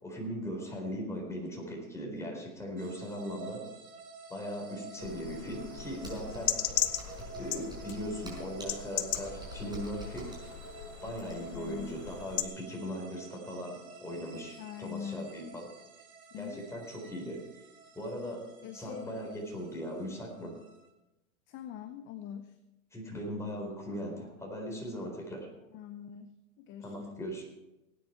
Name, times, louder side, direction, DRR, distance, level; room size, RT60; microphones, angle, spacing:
voice 1, 0.0-3.7 4.3-6.7 7.3-10.3 11.0-15.6 16.4-17.4 17.9-18.4 18.7-20.5 22.9-25.5 26.8-27.4, equal, 5° left, -1 dB, 4.2 m, -39 dB
sound 1, 2.8-20.9, right 5 dB, 85° right, 3.2 m, -50 dB
sound 2, 5.0-12.4, left 11 dB, 75° left, 1.3 m, -37 dB
Computer keyboard, 6.0-11.6, right 1 dB, 10° right, 5.1 m, -47 dB
voice 2, 11.5-12.0 14.6-15.4 16.3-16.6 18.6-19.1 21.5-22.6 25.7-27.2, left 9 dB, 30° left, 10 dB, 0.7 m, -43 dB
18.5 x 9.7 x 4.5 m, 0.98 s
hypercardioid pair, 130°, 43 cm